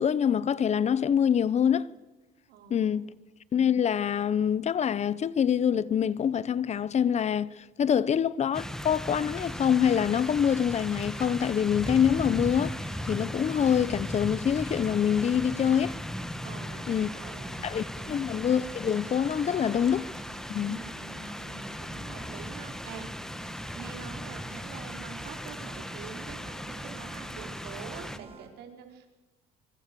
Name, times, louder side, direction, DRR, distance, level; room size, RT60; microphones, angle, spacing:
voice 1, 0.0-1.9 2.7-3.1 3.5-12.8 13.1-16.0 16.9-17.1 17.6-20.1 20.5-20.8, left 8 dB, 40° left, 0.9 m, -25 dB
voice 2, 2.5-3.2 16.4-18.3 20.6-23.1 23.7-29.1, right 7 dB, 85° right, 4.6 m, -46 dB
sound 1, 8.5-28.2, equal, 5° left, 1.5 m, -37 dB
sound 2, 11.0-28.5, right 4 dB, 35° right, 4.6 m, -50 dB
25.5 x 24.5 x 7.0 m
cardioid pair, 110°, 17 cm